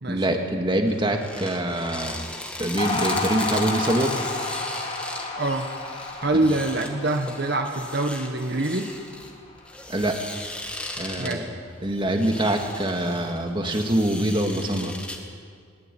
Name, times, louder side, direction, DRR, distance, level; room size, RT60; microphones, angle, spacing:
voice 1, 0.1-2.2 2.6-4.2 9.9-10.2 10.9-11.4 11.8-15.0, right 1 dB, 25° right, 4 dB, 2.0 m, -24 dB
sound 1, 0.9-15.2, left 1 dB, 5° left, 2.1 m, -37 dB
sound 2, 2.8-9.3, left 3 dB, 30° left, 3.4 m, -31 dB
voice 2, 5.4-5.7 6.2-8.9 11.2-11.5, right 2 dB, 50° right, 4 dB, 1.4 m, -25 dB
21.5 x 19.5 x 9.3 m, 2.1 s
head